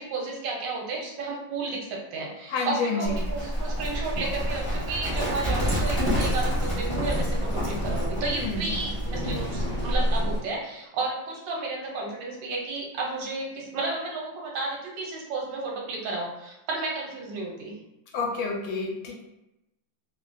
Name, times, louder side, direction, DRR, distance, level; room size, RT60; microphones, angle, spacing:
voice 1, 0.0-17.8, right 3 dB, 70° right, -2 dB, 1.3 m, -32 dB
voice 2, 2.5-3.0 8.3-8.6 18.1-19.2, left 4 dB, 80° left, 0 dB, 1.3 m, -29 dB
Livestock farm animals working animals, 3.0-10.4, equal, 35° left, 0.4 m, -27 dB
3.2 x 2.3 x 2.5 m, 0.91 s
omnidirectional pair, 2.2 m